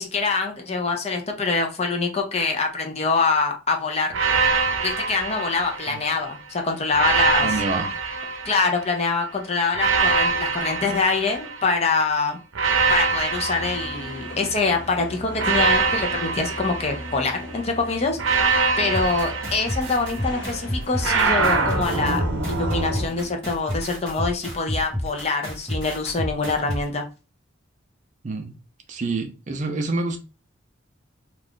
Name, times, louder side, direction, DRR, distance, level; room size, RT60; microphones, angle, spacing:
voice 1, 0.0-4.1 4.8-7.6 8.4-12.4 12.9-27.0, left 4 dB, 30° left, 0.5 m, -25 dB
sound 1, 4.1-6.3 6.9-9.1 9.7-11.9 12.5-14.7 15.4-17.5 18.2-20.4 21.0-23.1, right 4 dB, 80° right, 0.6 m, -24 dB
voice 2, 7.4-7.9 28.2-28.5 28.9-30.2, right 3 dB, 40° right, 0.4 m, -27 dB
sound 2, 13.3-23.3, equal, 65° left, 1.0 m, -39 dB
sound 3, 18.9-26.8, equal, 5° left, 1.2 m, -29 dB
2.4 x 2.3 x 3.5 m
head